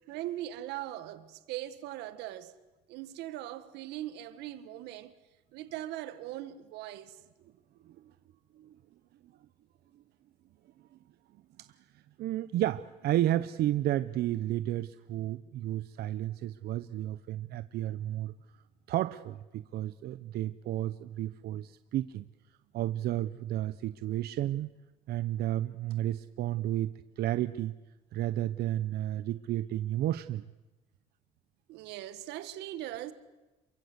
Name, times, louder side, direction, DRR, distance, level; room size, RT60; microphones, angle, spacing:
voice 1, 0.1-2.5 2.9-5.1 5.5-7.2 31.7-33.1, right 14 dB, 90° right, 1.9 m, -40 dB
voice 2, 12.2-18.3 18.9-22.2 22.7-24.7 25.1-26.9 27.2-27.7 28.1-30.4, right 13 dB, 70° right, 0.9 m, -32 dB
28.5 x 23.0 x 8.2 m
cardioid pair, 110°, 17 cm